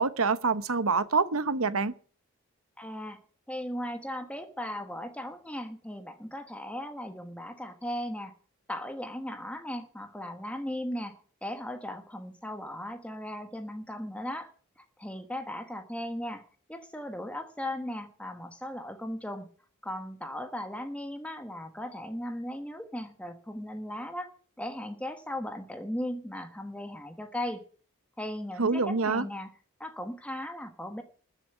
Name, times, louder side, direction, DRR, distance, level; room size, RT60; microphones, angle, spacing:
voice 1, 0.0-1.9 28.6-29.2, right 4 dB, 70° right, 1.0 m, -26 dB
voice 2, 2.8-3.2 3.5-8.3 8.7-14.5 14.8-19.5 19.8-24.3 24.6-27.6 28.2-29.5 29.8-31.0, left 1 dB, 5° left, 1.3 m, -37 dB
13.5 x 7.0 x 9.1 m
head